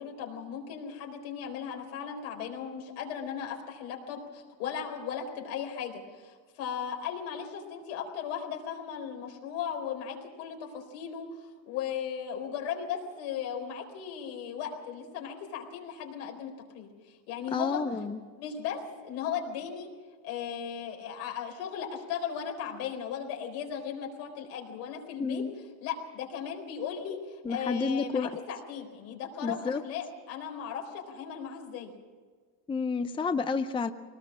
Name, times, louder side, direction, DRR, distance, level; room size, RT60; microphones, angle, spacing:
voice 1, 0.0-17.8 18.4-19.9 20.2-25.5 25.8-31.9, left 8 dB, 75° left, 2 dB, 4.3 m, -37 dB
voice 2, 17.5-18.2 25.2-25.5 27.4-28.3 29.4-29.8 32.7-33.9, left 4 dB, 10° left, 9 dB, 0.6 m, -30 dB
22.0 x 19.0 x 6.2 m, 1.6 s
supercardioid pair, 120°, 42 cm